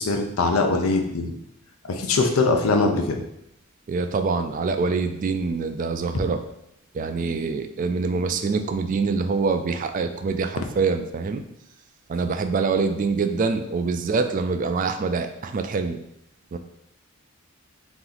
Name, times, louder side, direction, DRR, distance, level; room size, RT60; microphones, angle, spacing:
voice 1, 0.0-1.3 1.8-3.2, left 3 dB, 75° left, 4 dB, 0.6 m, -22 dB
voice 2, 3.9-6.4 6.9-11.4 12.1-16.0 16.5-16.6, right 4 dB, 35° right, 8 dB, 0.3 m, -25 dB
3.9 x 3.0 x 3.9 m, 0.79 s
head